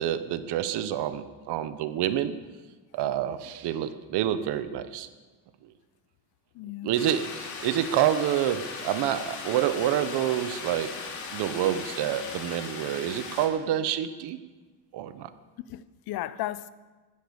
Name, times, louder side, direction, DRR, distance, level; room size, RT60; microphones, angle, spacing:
voice 1, 0.0-2.3 2.9-5.1 5.6-5.7 6.8-11.0 11.3-14.4 14.9-15.3, right 11 dB, 80° right, 1.2 m, -28 dB
voice 2, 6.5-6.9 15.7-16.7, left 14 dB, 65° left, 0.8 m, -35 dB
sound 1, 7.0-13.5, left 5 dB, 45° left, 2.9 m, -38 dB
15.5 x 12.0 x 7.2 m
cardioid pair, 140°, 40 cm